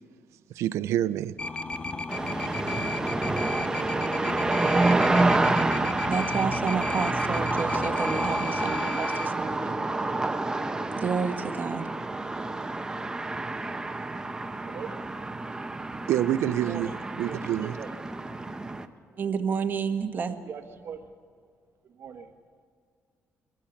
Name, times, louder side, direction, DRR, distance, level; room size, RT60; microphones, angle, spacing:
voice 1, 0.5-1.3 2.4-2.5 16.1-16.9 17.2-17.8, right 12 dB, 90° right, 0.5 m, -27 dB
sound 1, 1.4-9.3, left 3 dB, 25° left, 0.7 m, -34 dB
sound 2, 2.1-18.9, right 2 dB, 15° right, 1.0 m, -28 dB
voice 2, 6.1-9.8 10.9-11.9 19.2-20.4, right 5 dB, 40° right, 1.5 m, -30 dB
voice 3, 17.2-18.0 19.1-19.2 20.4-21.0 21.9-22.3, right 7 dB, 60° right, 1.2 m, -40 dB
23.0 x 16.0 x 7.2 m
cardioid pair, 110°, 5 cm